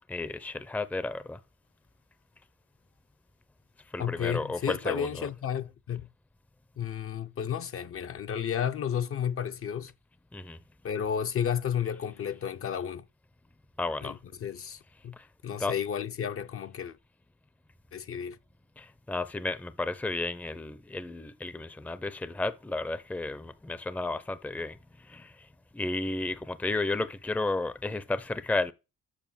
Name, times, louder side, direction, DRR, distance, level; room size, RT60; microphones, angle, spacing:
voice 1, 0.1-1.4 3.9-5.3 10.3-10.6 13.8-14.2 15.1-15.3 15.6-15.7 18.8-25.5 25.7-28.7, left 2 dB, 5° left, 0.5 m, -33 dB
voice 2, 4.0-6.1 6.8-9.9 10.8-13.1 14.0-15.2 15.4-17.0 17.9-18.4, left 8 dB, 45° left, 0.6 m, -32 dB
7.2 x 5.5 x 7.1 m
cardioid pair, 90°, 30 cm